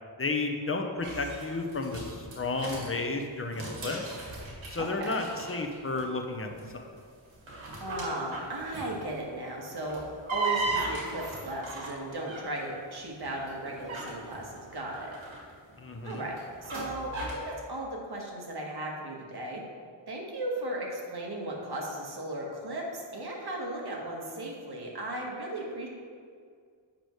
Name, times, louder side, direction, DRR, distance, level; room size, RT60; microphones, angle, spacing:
voice 1, 0.2-4.2 4.7-6.9 15.8-16.2, left 3 dB, 30° left, 3 dB, 0.9 m, -32 dB
sound 1, 1.0-2.9 3.4-6.0 6.3-6.7 7.3-9.1 9.7-12.7 13.2-17.5, right 3 dB, 80° right, 1.9 m, -37 dB
voice 2, 4.8-5.2 7.8-10.0 10.3-15.1 16.0-19.6 20.1-25.9, right 1 dB, 55° right, -2 dB, 1.7 m, -36 dB
8.3 x 5.9 x 3.2 m, 2.1 s
cardioid pair, 60°, 47 cm